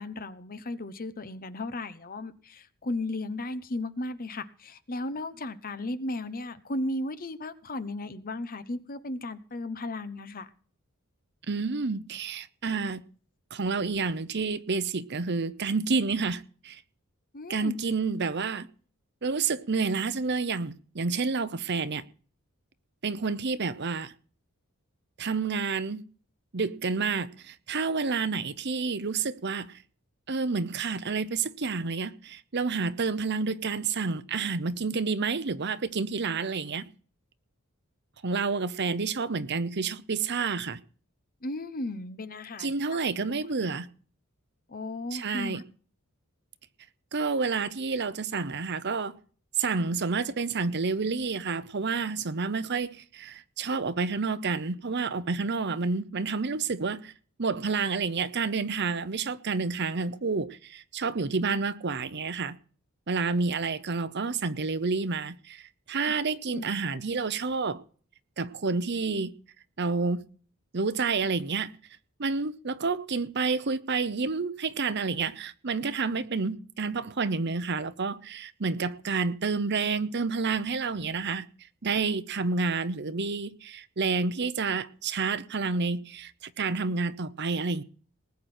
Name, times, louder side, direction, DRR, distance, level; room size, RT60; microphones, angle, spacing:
voice 1, 0.0-10.5 17.3-17.7 41.4-42.7 43.2-43.3 44.7-45.6 66.4-66.6, left 2 dB, 40° left, 0.9 m, -35 dB
voice 2, 11.5-13.0 13.5-16.8 17.5-18.7 19.2-22.0 23.0-24.1 25.2-26.0 26.5-29.8 30.3-36.9 38.2-40.8 42.6-43.9 45.1-45.6 47.1-49.2 49.6-57.1 57.4-62.6 63.1-67.8 68.4-69.3 69.8-70.2 70.7-71.7 72.2-81.4 81.8-87.8, right 4 dB, 50° right, 0.8 m, -29 dB
20.0 x 9.5 x 4.4 m
head